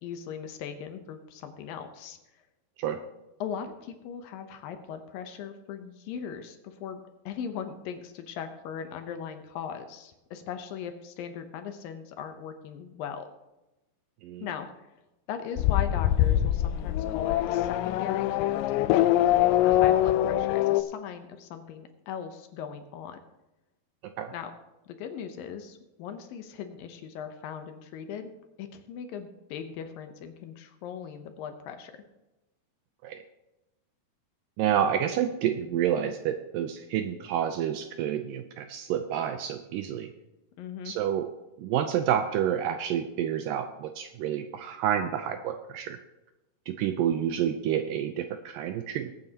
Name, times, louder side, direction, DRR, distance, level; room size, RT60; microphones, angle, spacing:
voice 1, 0.0-2.4 3.4-13.3 14.4-14.9 15.3-19.2 19.6-23.2 24.3-24.5 24.9-28.3 28.6-31.9 40.6-41.0, left 8 dB, 75° left, 7 dB, 2.4 m, -39 dB
Race car auto racing / Accelerating revving vroom, 15.6-20.8, left 13 dB, 90° left, 1.9 m, -23 dB
voice 2, 34.6-40.1 40.9-41.3 41.6-46.0 46.7-49.1, right 9 dB, 80° right, 7 dB, 2.0 m, -29 dB
20.5 x 8.9 x 2.9 m, 0.99 s
omnidirectional pair, 4.4 m